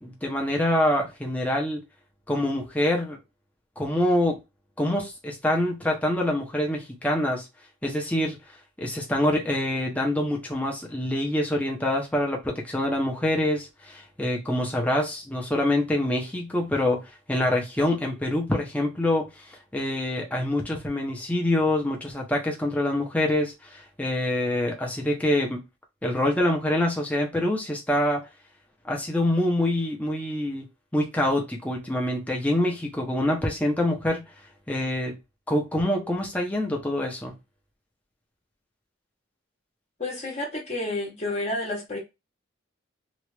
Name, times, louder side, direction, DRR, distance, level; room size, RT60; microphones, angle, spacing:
voice 1, 0.0-1.8 2.3-3.2 3.8-4.4 4.8-7.5 7.8-8.4 8.8-25.6 26.0-28.2 28.8-30.7 30.9-34.2 34.7-35.2 35.5-37.4, left 1 dB, 5° left, 0.7 m, -25 dB
voice 2, 40.0-42.0, left 2 dB, 35° left, 1.0 m, -30 dB
2.9 x 2.4 x 3.2 m
head